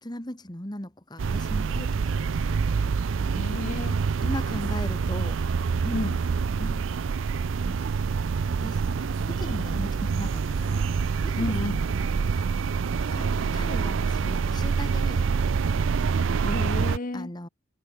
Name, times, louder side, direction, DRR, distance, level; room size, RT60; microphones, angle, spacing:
voice 1, 0.0-2.0 2.5-2.7 4.2-5.4 5.8-6.0 6.6-6.9 7.5-7.9 8.6-11.9 12.2-12.5 13.0-15.3 15.7-16.2 17.1-17.5, left 1 dB, 20° left, 2.6 m, -38 dB
sound 1, 1.2-17.0, right 5 dB, 85° right, 0.5 m, -26 dB
voice 2, 3.3-4.0 5.9-6.2 11.4-11.8 16.3-17.3, left 2 dB, 45° left, 0.8 m, -32 dB
head